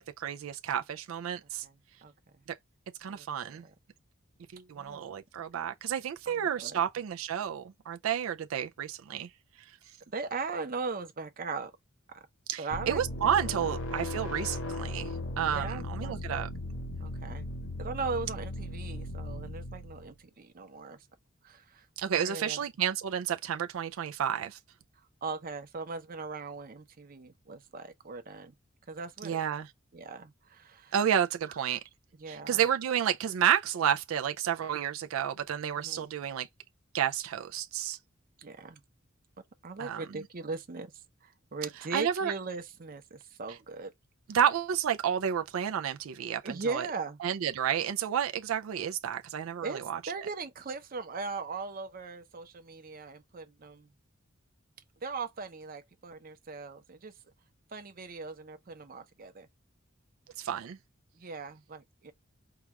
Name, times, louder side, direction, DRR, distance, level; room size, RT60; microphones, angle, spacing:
voice 1, 0.0-1.6 3.0-3.6 4.5-9.3 12.5-16.5 22.0-24.6 29.2-29.7 30.9-31.8 32.3-36.5 36.9-38.0 39.8-40.0 41.9-42.3 44.3-46.9 47.2-50.0 60.4-60.8, right 9 dB, 90° right, 0.4 m, -31 dB
voice 2, 3.1-3.7 4.7-5.0 6.3-6.8 10.1-11.7 12.1-12.2 12.6-13.0 15.5-16.4 17.0-17.5 17.8-21.0 21.4-21.8 22.1-22.6 25.2-28.5 28.9-29.4 29.9-30.9 31.5-31.6 32.1-32.6 35.8-36.1 38.4-38.8 39.6-40.9 41.2-43.9 46.4-47.2 49.6-53.9 55.0-57.1 57.7-59.5 61.2-62.1, right 4 dB, 45° right, 0.7 m, -39 dB
sound 1, 12.7-20.1, left 1 dB, 80° left, 0.8 m, -37 dB
4.7 x 2.3 x 2.9 m
head